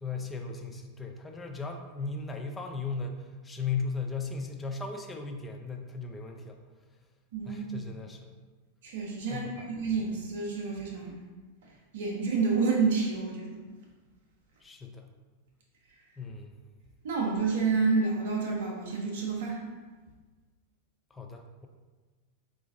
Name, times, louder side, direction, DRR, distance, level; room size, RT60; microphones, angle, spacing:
voice 1, 0.0-6.6 7.5-8.3 9.3-9.7 14.6-15.1 16.2-16.5 21.1-21.7, left 4 dB, 15° left, 3 dB, 0.4 m, -37 dB
voice 2, 7.3-7.6 8.8-11.2 11.9-13.6 17.0-19.6, right 4 dB, 55° right, -2 dB, 0.5 m, -29 dB
3.9 x 2.5 x 3.4 m, 1.3 s
figure-of-eight pair, 90°, 0 cm